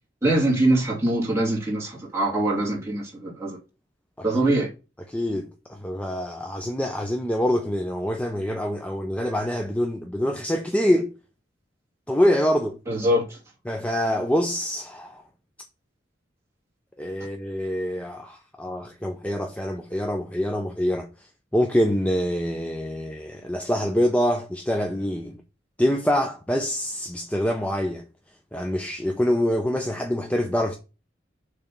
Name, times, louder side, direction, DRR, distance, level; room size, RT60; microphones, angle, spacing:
voice 1, 0.2-3.6 4.2-4.7 12.9-13.4, right 1 dB, 15° right, 2.6 m, -23 dB
voice 2, 5.1-11.1 12.1-12.8 13.7-15.2 17.0-21.1 21.5-25.4 25.8-28.0 28.5-30.7, equal, 5° left, 0.6 m, -25 dB
7.0 x 3.4 x 5.9 m
head